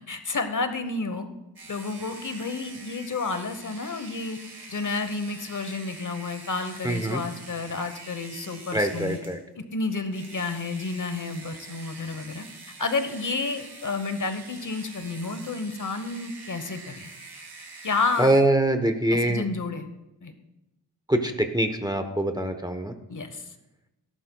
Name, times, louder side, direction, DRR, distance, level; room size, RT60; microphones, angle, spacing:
voice 1, 0.1-1.3 1.7-4.4 4.7-9.2 9.5-12.5 12.8-17.1 17.8-18.4 19.1-19.9 20.2-20.3 23.1-23.4, left 3 dB, 50° left, 9 dB, 1.0 m, -30 dB
sound 1, 1.6-9.4 10.1-18.4, right 3 dB, 70° right, 2.7 m, -45 dB
voice 2, 6.8-7.2 8.7-9.4 18.2-19.5 21.1-22.9, right 1 dB, 10° right, 6 dB, 0.9 m, -24 dB
17.0 x 11.0 x 2.3 m, 0.94 s
wide cardioid pair, 90°, 41 cm